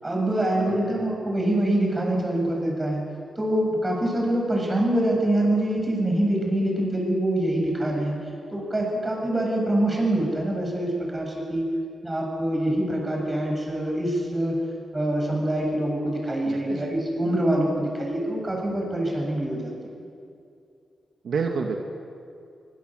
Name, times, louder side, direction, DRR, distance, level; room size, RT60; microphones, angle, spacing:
voice 1, 0.0-3.0 3.4-8.2 8.5-11.6 12.0-14.6 14.9-19.7, right 1 dB, 20° right, 0 dB, 7.9 m, -25 dB
voice 2, 0.5-1.1 16.4-16.9 21.2-21.8, right 5 dB, 70° right, 2 dB, 2.2 m, -30 dB
25.0 x 25.0 x 8.0 m, 2.5 s
wide cardioid pair, 120°, 0 cm